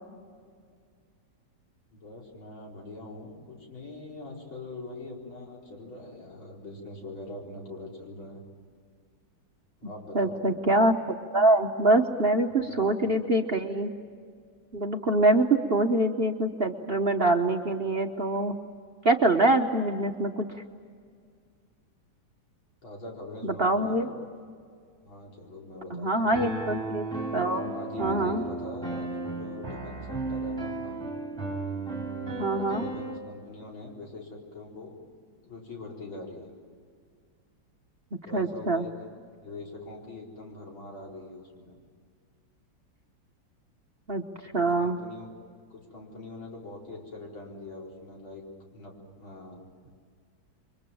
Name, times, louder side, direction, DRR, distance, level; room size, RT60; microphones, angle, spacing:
voice 1, 1.9-8.4 9.8-10.5 12.0-12.1 12.4-12.9 22.8-24.3 25.0-26.7 27.7-31.0 32.4-35.0 35.4-36.5 38.2-39.1 39.4-41.8 44.4-45.3 45.7-49.6, left 2 dB, 85° left, -1 dB, 5.3 m, -43 dB
voice 2, 10.1-10.9 11.3-13.9 14.7-18.5 19.0-20.5 23.4-24.1 25.9-27.1 27.3-28.4 32.4-32.8 38.3-38.9 44.1-45.0, right 2 dB, 40° right, 4 dB, 1.0 m, -24 dB
Piano, 26.3-33.2, right 3 dB, ahead, 6.2 m, -34 dB
29.0 x 23.5 x 7.7 m, 2.1 s
omnidirectional pair, 2.1 m